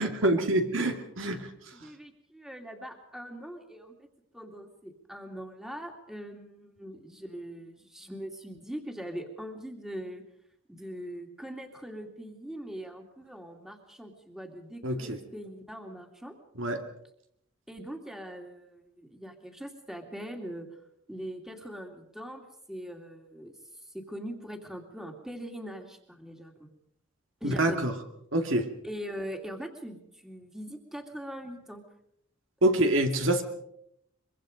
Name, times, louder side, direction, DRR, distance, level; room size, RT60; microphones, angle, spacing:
voice 1, 0.0-1.5 14.8-15.2 16.6-16.8 27.4-27.9 28.3-28.7 32.6-33.4, right 1 dB, 70° right, 5 dB, 2.4 m, -26 dB
voice 2, 1.7-4.1 4.3-10.2 10.7-16.3 17.7-20.7 21.1-26.7 27.4-27.9 28.8-31.8 32.6-32.9, equal, ahead, 4 dB, 2.4 m, -42 dB
23.5 x 23.5 x 5.2 m, 0.75 s
head